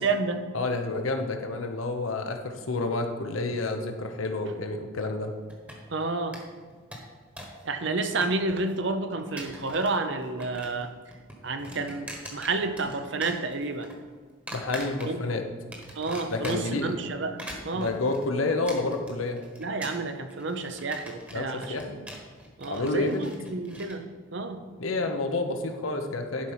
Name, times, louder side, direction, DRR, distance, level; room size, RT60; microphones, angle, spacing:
voice 1, 0.0-0.5 5.9-6.4 7.6-10.9 11.4-13.9 15.1-15.2 15.9-18.0 19.6-21.8 22.6-24.6, right 3 dB, 60° right, 8 dB, 0.7 m, -30 dB
voice 2, 0.5-5.3 14.5-15.4 16.3-16.9 17.7-19.4 21.3-22.0 22.7-23.3 24.8-26.5, left 2 dB, 80° left, 5 dB, 1.0 m, -29 dB
sound 1, 5.5-6.0 6.3-6.4 6.7-7.6 7.9-8.7 9.2-10.0 10.2-10.9 11.1-13.0 13.2-13.9 14.5-15.3 15.7-16.8 17.2-23.9, right 1 dB, 5° right, 1.2 m, -42 dB
11.5 x 4.5 x 5.7 m, 1.5 s
head